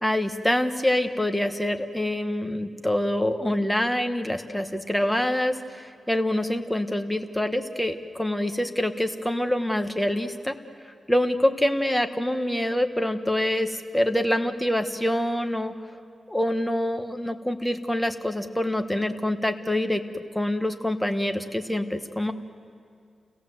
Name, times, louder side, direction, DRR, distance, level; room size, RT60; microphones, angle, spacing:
voice 1, 0.0-10.5 11.1-15.7 16.3-22.3, left 1 dB, 5° left, 7 dB, 1.3 m, -26 dB
30.0 x 17.0 x 7.8 m, 2.3 s
wide cardioid pair, 100°, 0 cm